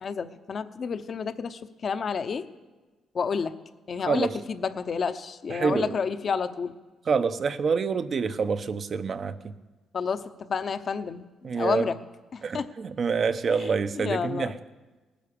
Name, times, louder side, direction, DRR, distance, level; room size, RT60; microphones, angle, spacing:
voice 1, 0.0-2.5 3.1-3.5 3.9-6.7 9.9-12.0 12.3-12.7 13.6-13.7 14.0-14.6, left 5 dB, 50° left, 11 dB, 0.9 m, -30 dB
voice 2, 5.5-6.0 7.1-9.5 11.4-11.9 12.4-14.5, right 5 dB, 45° right, 11 dB, 0.8 m, -27 dB
19.0 x 10.5 x 6.9 m, 1.2 s
cardioid pair, 90°, 0 cm